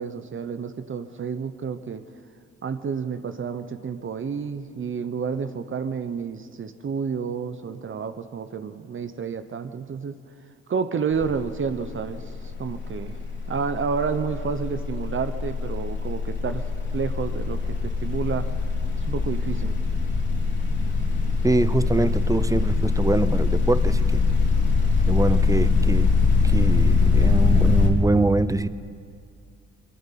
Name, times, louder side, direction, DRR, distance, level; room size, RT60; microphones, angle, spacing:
voice 1, 0.0-2.0 2.6-10.2 10.7-13.2 13.5-16.7 16.9-18.5 19.0-19.8, right 6 dB, 40° right, 10 dB, 1.0 m, -30 dB
sound 1, 11.1-11.5 11.7-27.9, left 4 dB, 40° left, 3.3 m, -22 dB
voice 2, 21.4-24.2 25.1-26.1 26.4-28.7, right 2 dB, 10° right, 14 dB, 0.7 m, -24 dB
22.0 x 21.5 x 5.8 m, 2.3 s
cardioid pair, 90°, 30 cm